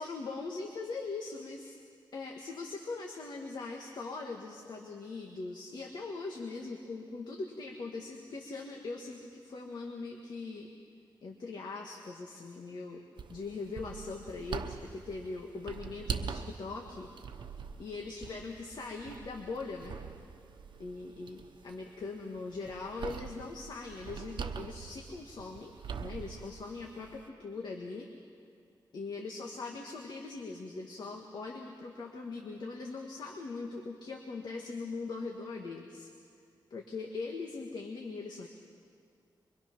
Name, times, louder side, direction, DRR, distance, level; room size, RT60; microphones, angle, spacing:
voice 1, 0.0-1.8 2.1-10.7 11.2-17.1 17.8-20.0 20.8-25.7 26.0-28.1 28.9-36.1 36.7-38.5, left 3 dB, 60° left, 1 dB, 1.6 m, -41 dB
sound 1, 13.2-27.3, right 6 dB, 75° right, 1.0 m, -44 dB
25.0 x 23.5 x 6.0 m, 2.2 s
wide cardioid pair, 155°, 8 cm